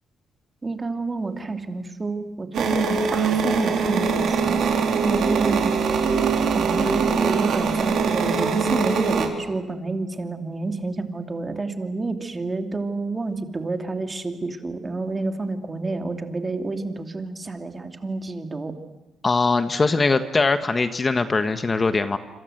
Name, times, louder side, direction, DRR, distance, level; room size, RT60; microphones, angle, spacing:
voice 1, 0.6-5.7 6.5-18.7, right 3 dB, 25° right, 5 dB, 2.8 m, -29 dB
sound 1, 2.5-9.3, right 5 dB, 70° right, 4.0 m, -22 dB
voice 2, 19.2-22.2, left 3 dB, 30° left, 9 dB, 1.4 m, -21 dB
26.5 x 26.5 x 8.0 m, 1.1 s
cardioid pair, 90°, 0 cm